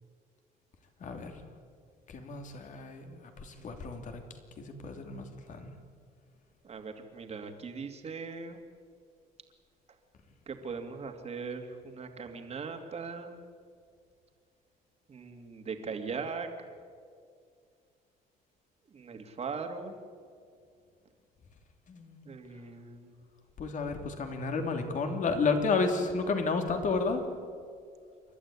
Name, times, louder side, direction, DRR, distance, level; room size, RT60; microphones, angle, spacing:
voice 1, 1.0-1.4 2.1-4.2 4.6-5.7 21.9-22.2 23.6-27.2, left 4 dB, 50° left, 5 dB, 3.1 m, -32 dB
voice 2, 6.6-8.6 10.5-13.4 15.1-16.5 18.9-20.0 22.2-23.1, right 5 dB, 40° right, 5 dB, 2.7 m, -40 dB
28.5 x 12.0 x 9.9 m, 2.2 s
cardioid pair, 110°, 17 cm